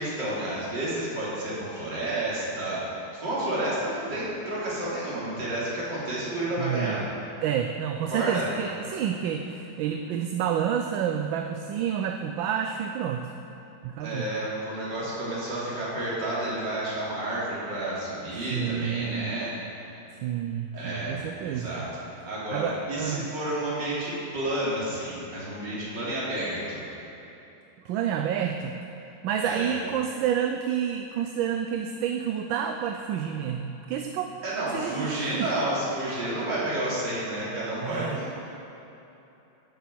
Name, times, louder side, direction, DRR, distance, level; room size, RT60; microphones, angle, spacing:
voice 1, 0.0-2.8 3.1-7.0 8.1-8.5 14.0-19.5 20.7-26.8 29.4-29.7 34.4-38.3, right 1 dB, 60° right, -8 dB, 3.7 m, -30 dB
voice 2, 6.6-7.0 7.4-13.3 13.8-14.3 18.5-19.3 20.2-21.8 22.5-23.3 27.8-28.7 29.2-34.4 34.7-35.5 37.4-38.2, right 9 dB, 75° right, 5 dB, 1.3 m, -29 dB
13.5 x 7.1 x 6.2 m, 2.9 s
omnidirectional pair, 2.2 m